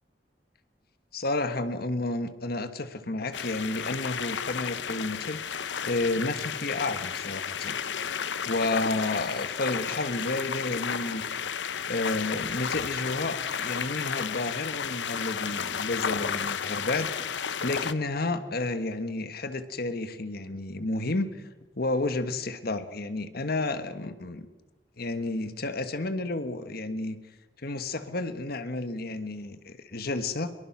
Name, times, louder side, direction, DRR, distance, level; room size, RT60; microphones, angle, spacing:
voice 1, 1.1-5.4 5.8-7.8 8.4-11.2 11.9-17.3 17.6-21.4 21.7-24.5 25.0-27.2 27.6-30.5, left 2 dB, 60° left, 10 dB, 1.5 m, -31 dB
sound 1, 3.3-17.9, left 7 dB, 80° left, 0.8 m, -32 dB
24.0 x 22.0 x 6.1 m, 1.1 s
head